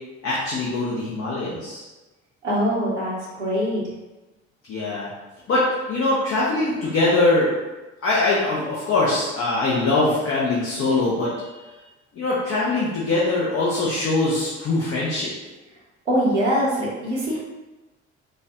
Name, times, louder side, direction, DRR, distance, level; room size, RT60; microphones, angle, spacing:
voice 1, 0.2-1.8 4.7-5.1 5.5-7.5 8.0-11.3 12.1-15.3, left 2 dB, 40° left, -6 dB, 1.0 m, -22 dB
voice 2, 2.4-3.8 16.1-17.4, equal, 85° right, -5 dB, 0.9 m, -23 dB
5.2 x 2.3 x 2.5 m, 1.1 s
figure-of-eight pair, 55°, 34 cm